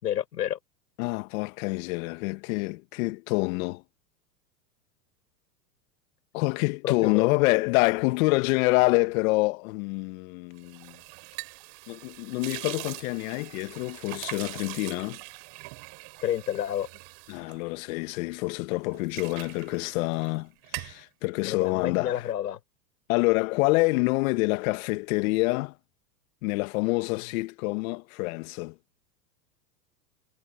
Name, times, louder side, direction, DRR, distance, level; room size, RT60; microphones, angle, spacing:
voice 1, 0.0-0.6 6.8-7.3 16.2-16.9 21.5-22.6, left 11 dB, 80° left, 5.6 m, -29 dB
voice 2, 1.0-3.8 6.3-11.0 11.9-15.2 17.3-22.2 23.1-25.7 26.4-28.7, left 24 dB, 55° left, 1.9 m, -27 dB
sound 1, 10.6-18.3 18.7-20.4 20.6-21.0, right 30 dB, 50° right, 4.2 m, -42 dB
hypercardioid pair, 105°, 48 cm